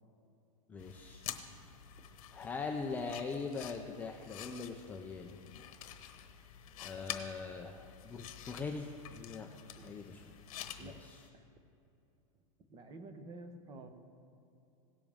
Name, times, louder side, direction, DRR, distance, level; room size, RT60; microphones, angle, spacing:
voice 1, 0.7-1.2 2.3-5.4 6.8-9.5 9.8-10.3 10.8-11.2, left 4 dB, 10° left, 2 dB, 0.3 m, -42 dB
sound 1, 0.8-11.3, left 10 dB, 65° left, 1.0 m, -48 dB
voice 2, 12.7-13.9, right 2 dB, 20° right, 8 dB, 0.8 m, -49 dB
17.5 x 7.0 x 3.5 m, 2.7 s
supercardioid pair, 155°, 19 cm